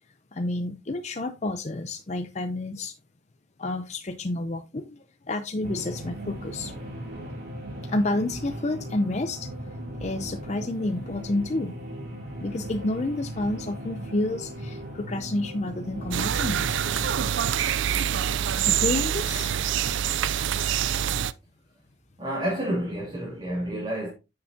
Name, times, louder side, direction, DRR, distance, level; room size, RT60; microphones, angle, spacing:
voice 1, 0.3-2.9 3.6-6.7 7.8-9.5 10.0-11.8 12.4-17.1 18.6-19.5, left 2 dB, 35° left, 0.5 m, -30 dB
sound 1, 5.6-17.3, right 1 dB, 45° right, 2.7 m, -38 dB
sound 2, 16.1-21.3, right 9 dB, 75° right, 0.4 m, -25 dB
voice 2, 22.2-24.1, right 1 dB, 25° right, 2.3 m, -29 dB
9.2 x 6.7 x 2.7 m
head